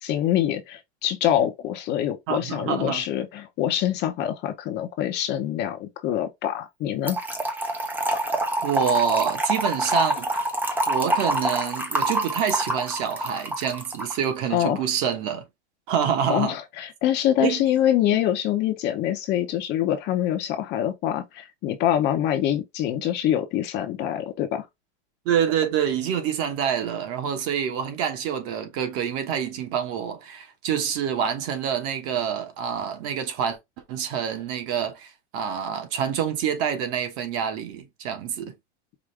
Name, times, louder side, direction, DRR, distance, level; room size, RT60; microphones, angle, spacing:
voice 1, 0.0-7.2 14.5-14.8 16.3-24.7, left 11 dB, 30° left, 0.7 m, -25 dB
voice 2, 2.3-3.0 8.6-10.4 10.9-15.4 15.9-16.6 17.4-17.6 25.2-33.6 33.9-38.5, right 8 dB, 40° right, 1.1 m, -27 dB
Trickle dribble / Fill (with liquid), 7.1-14.2, right 1 dB, 5° right, 0.5 m, -26 dB
5.0 x 2.5 x 3.2 m
supercardioid pair, 150°, 33 cm